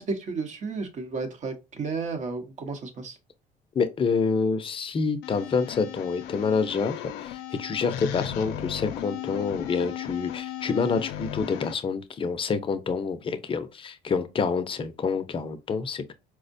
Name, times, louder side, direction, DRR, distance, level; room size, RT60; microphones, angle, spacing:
voice 1, 0.0-3.2, right 4 dB, 45° right, 0.9 m, -32 dB
voice 2, 3.7-16.1, left 5 dB, 30° left, 0.5 m, -27 dB
sound 1, 5.2-11.7, left 11 dB, 90° left, 0.4 m, -36 dB
4.5 x 2.1 x 2.5 m
cardioid pair, 110°, 17 cm